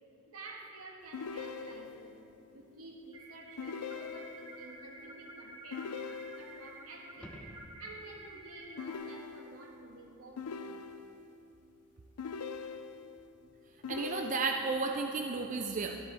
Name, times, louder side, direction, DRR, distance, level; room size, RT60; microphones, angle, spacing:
voice 1, 0.3-6.0 6.3-7.5 7.8-10.7, right 2 dB, 75° right, 0 dB, 1.6 m, -50 dB
sound 1, 1.1-2.2 3.6-4.6 5.7-6.8 8.8-9.8 10.4-11.3 12.2-13.2 13.8-14.9, left 5 dB, 90° left, 0.5 m, -42 dB
sound 2, 3.1-8.9, right 2 dB, 20° right, 1.4 m, -51 dB
sound 3, 7.1-8.3 13.2-13.3, equal, 5° left, 0.7 m, -51 dB
voice 2, 13.9-16.0, right 4 dB, 35° right, 4 dB, 0.4 m, -33 dB
13.0 x 13.0 x 3.5 m, 3.0 s
head